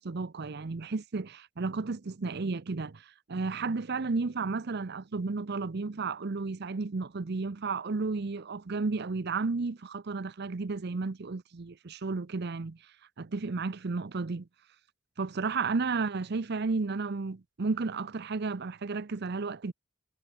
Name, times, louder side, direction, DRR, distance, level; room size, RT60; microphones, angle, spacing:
voice 1, 0.0-12.8 13.2-14.5 15.2-19.7, right 4 dB, 55° right, 0.7 m, -33 dB
head